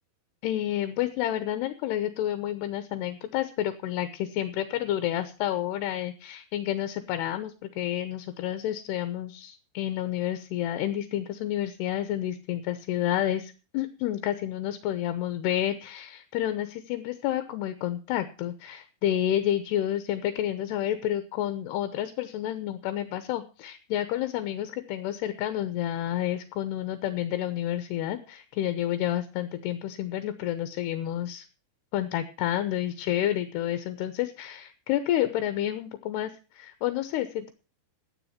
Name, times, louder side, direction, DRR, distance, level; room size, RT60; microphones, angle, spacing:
voice 1, 0.4-31.5 31.9-37.5, left 12 dB, 80° left, 10 dB, 3.0 m, -30 dB
12.5 x 10.0 x 5.7 m, 0.34 s
omnidirectional pair, 4.8 m